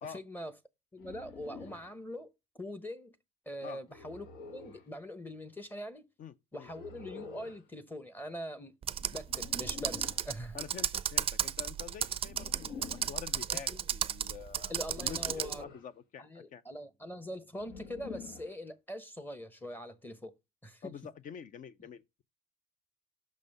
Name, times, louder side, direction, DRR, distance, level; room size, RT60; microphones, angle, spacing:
voice 1, 0.1-0.5 0.9-2.3 2.5-3.2 3.5-6.0 6.5-10.6 13.7-13.8 14.7-15.7 16.2-20.3 20.6-20.9, equal, 10° left, 0.9 m, -43 dB
sound 1, 1.0-1.9 3.9-4.9 6.6-7.6 9.3-10.3 12.2-13.2 14.9-15.9 17.6-18.6, left 5 dB, 85° left, 1.3 m, -48 dB
voice 2, 6.2-6.7 10.5-16.6 20.8-22.2, left 7 dB, 50° left, 0.5 m, -47 dB
Computer keyboard, 8.8-15.6, right 9 dB, 35° right, 0.4 m, -34 dB
6.2 x 5.3 x 5.3 m
cardioid pair, 110°, 17 cm